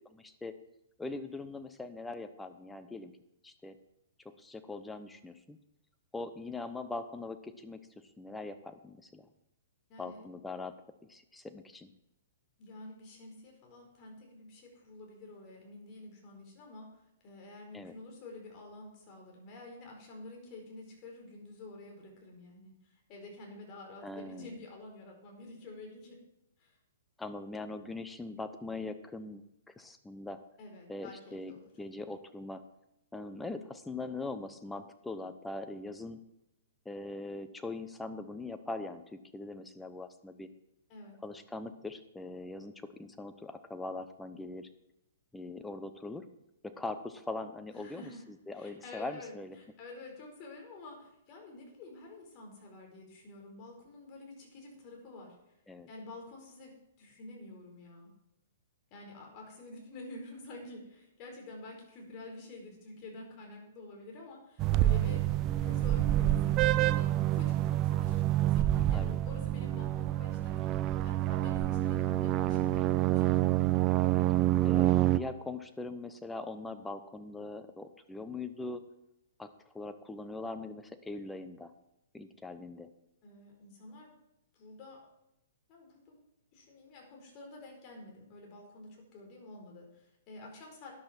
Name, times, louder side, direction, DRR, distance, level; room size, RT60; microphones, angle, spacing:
voice 1, 0.0-0.5 1.0-3.1 3.4-3.7 4.2-5.6 6.1-7.8 8.2-9.3 10.0-10.8 11.1-11.9 17.7-17.9 24.0-24.6 27.2-29.4 29.8-30.4 30.9-32.6 33.1-36.2 36.8-40.5 41.2-42.7 43.0-44.7 45.3-46.3 46.6-49.6 55.7-55.9 68.9-69.2 74.6-78.8 79.4-79.5 79.7-81.7 82.1-82.9, left 2 dB, 5° left, 8 dB, 0.8 m, -41 dB
voice 2, 12.6-26.2 26.6-26.7 30.6-31.7 40.9-41.2 47.7-48.3 48.5-55.4 55.9-58.1 58.9-65.3 65.5-70.6 71.0-73.4 83.2-84.1 84.5-85.0 85.7-86.2 86.5-91.0, left 2 dB, 35° left, 0 dB, 4.5 m, -49 dB
sound 1, 64.6-75.2, right 14 dB, 30° right, 0.5 m, -27 dB
13.5 x 10.0 x 4.4 m, 0.87 s
figure-of-eight pair, 115°, 0 cm